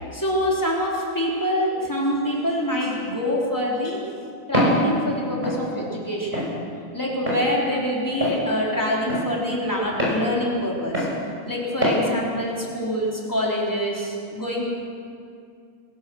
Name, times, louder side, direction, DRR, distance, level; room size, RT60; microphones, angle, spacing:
voice 1, 0.1-4.0 4.5-6.5 6.9-11.1 11.5-14.7, equal, 5° left, -4 dB, 3.9 m, -25 dB
Walk footsteps, 4.5-4.8 5.4-5.6 6.3-6.5 7.3-7.4 8.2-8.4 9.1-9.3 10.0-10.2 10.9-11.1 11.8-12.0, equal, 10° right, 5.9 m, -22 dB
26.5 x 15.5 x 6.4 m, 2.4 s
omnidirectional pair, 3.7 m